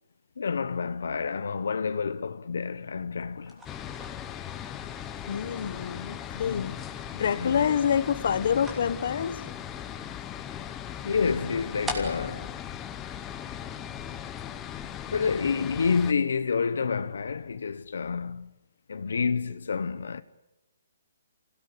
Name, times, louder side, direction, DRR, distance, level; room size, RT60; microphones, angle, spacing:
voice 1, 0.4-3.6 6.3-6.8 7.4-7.7 11.0-12.5 15.1-18.5 18.9-20.2, left 5 dB, 75° left, 1.0 m, -29 dB
sound 1, 3.4-13.8, equal, 5° right, 3.1 m, -45 dB
sound 2, 3.6-16.1, left 10 dB, 15° left, 0.9 m, -38 dB
voice 2, 5.3-6.7 7.1-9.4, left 8 dB, 55° left, 1.1 m, -27 dB
27.0 x 17.0 x 9.7 m
hypercardioid pair, 165°, 0 cm